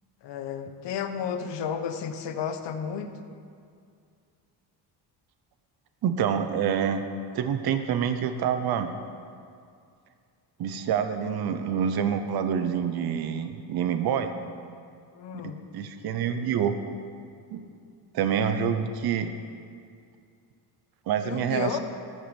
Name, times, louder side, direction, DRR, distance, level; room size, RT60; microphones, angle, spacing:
voice 1, 0.2-3.3 15.1-15.6 21.2-21.8, left 7 dB, 75° left, 8 dB, 1.1 m, -32 dB
voice 2, 6.0-7.0 7.3-9.0 10.6-14.3 15.7-16.8 17.5-17.6 18.1-19.3 21.1-21.8, right 8 dB, 60° right, 9 dB, 0.8 m, -27 dB
13.5 x 6.3 x 7.1 m, 2.3 s
cardioid pair, 145°, 43 cm